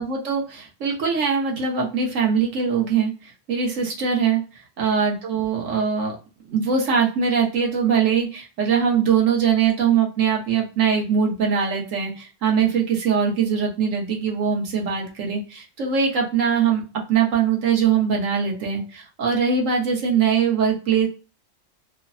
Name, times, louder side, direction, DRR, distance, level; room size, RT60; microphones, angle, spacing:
voice 1, 0.0-4.4 4.8-6.1 6.5-16.8 17.1-21.1, right 6 dB, 85° right, -1 dB, 1.3 m, -22 dB
3.2 x 2.1 x 2.4 m, 0.34 s
omnidirectional pair, 1.3 m